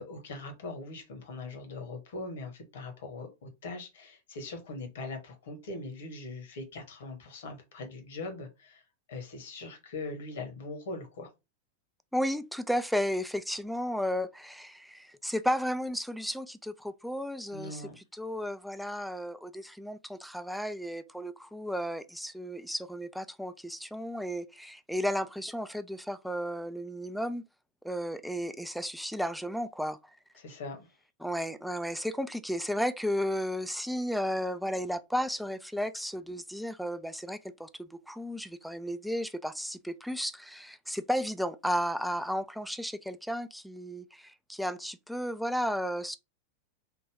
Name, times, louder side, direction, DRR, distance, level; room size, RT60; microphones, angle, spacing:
voice 1, 0.0-8.8 9.1-11.3 17.5-18.0 30.3-30.9, left 2 dB, 60° left, 1.1 m, -41 dB
voice 2, 12.1-17.8 18.1-27.4 27.8-30.0 31.2-46.2, equal, ahead, 0.3 m, -33 dB
3.4 x 2.2 x 3.4 m
figure-of-eight pair, 90°, 0 cm